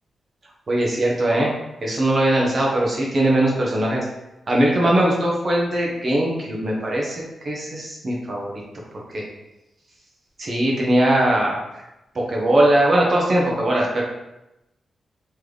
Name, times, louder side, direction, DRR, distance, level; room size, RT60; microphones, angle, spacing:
voice 1, 0.7-1.5 1.8-4.1 4.5-8.6 8.9-9.3 10.4-11.8 12.1-14.0, right 1 dB, 35° right, -3 dB, 0.9 m, -20 dB
3.9 x 3.2 x 3.3 m, 0.93 s
wide cardioid pair, 175°, 0 cm